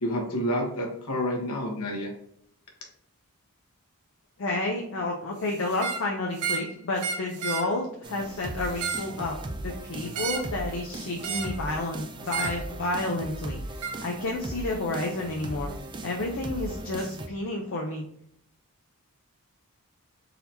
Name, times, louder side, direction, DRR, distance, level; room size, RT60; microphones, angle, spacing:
voice 1, 0.0-2.1, equal, 75° left, 0 dB, 1.2 m, -29 dB
voice 2, 4.4-9.4 9.6-13.6 14.0-15.7 16.0-18.0, left 2 dB, 60° left, 0 dB, 0.6 m, -30 dB
sound 1, 5.7-6.1 6.4-6.7 7.0-7.7 8.6-9.1 10.1-10.5 11.2-11.6 12.3-12.6 13.8-14.0, right 6 dB, 90° right, 0.6 m, -31 dB
sound 2, 8.0-17.3, right 1 dB, 20° right, 0.3 m, -38 dB
4.0 x 2.7 x 4.2 m, 0.69 s
head